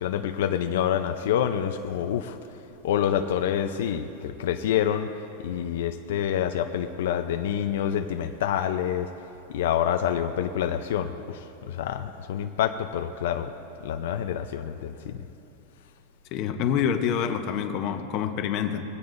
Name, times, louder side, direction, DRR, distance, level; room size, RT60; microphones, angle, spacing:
voice 1, 0.0-2.4 2.8-5.1 5.4-9.1 9.5-11.4 11.7-13.5 13.8-15.2, left 9 dB, 70° left, 6 dB, 0.6 m, -27 dB
voice 2, 16.3-18.8, left 8 dB, 35° left, 6 dB, 0.9 m, -27 dB
22.0 x 16.5 x 2.6 m, 2.8 s
supercardioid pair, 165°, 0 cm